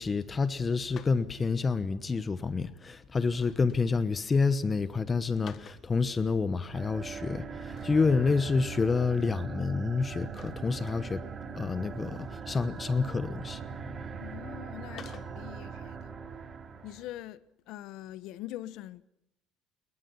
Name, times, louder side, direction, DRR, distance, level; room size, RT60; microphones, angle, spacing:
voice 1, 0.0-11.3 11.5-14.2, left 4 dB, 20° left, 1.1 m, -28 dB
sound 1, 0.9-1.2 3.3-3.8 5.3-5.9 7.7-8.1 8.5-8.6 9.0-9.1 10.4-10.7 12.4-12.8 15.0-15.3, left 8 dB, 40° left, 1.5 m, -50 dB
sound 2, 6.7-17.1, right 6 dB, 25° right, 3.2 m, -41 dB
voice 2, 14.2-16.2 16.8-19.0, left 14 dB, 65° left, 1.2 m, -43 dB
28.5 x 22.0 x 5.6 m
cardioid pair, 135°, 0 cm